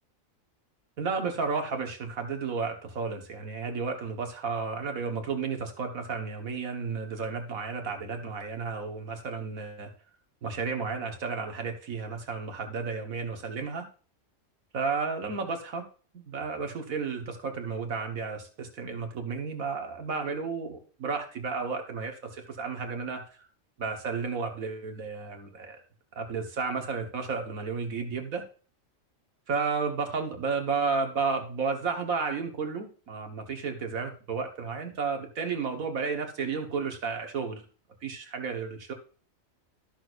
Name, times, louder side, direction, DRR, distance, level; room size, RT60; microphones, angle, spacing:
voice 1, 1.0-9.9 10.4-13.9 14.7-15.8 16.1-23.4 23.8-25.8 26.2-28.4 29.5-37.6 38.0-38.9, right 5 dB, 80° right, 5 dB, 1.9 m, -32 dB
14.0 x 6.2 x 2.5 m, 0.38 s
omnidirectional pair, 1.4 m